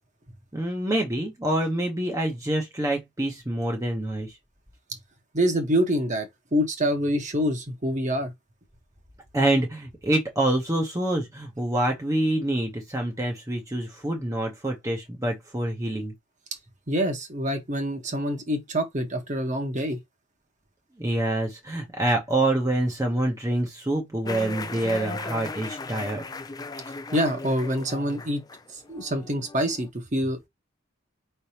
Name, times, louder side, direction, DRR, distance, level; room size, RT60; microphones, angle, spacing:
voice 1, 0.5-4.4 9.3-16.1 21.0-26.3, right 1 dB, 15° right, 0.9 m, -26 dB
voice 2, 5.3-8.3 16.9-20.0 27.1-28.4 28.7-30.5, equal, 35° right, 1.2 m, -26 dB
sound 1, 24.2-29.9, left 3 dB, 20° left, 0.4 m, -37 dB
5.3 x 3.3 x 2.8 m
head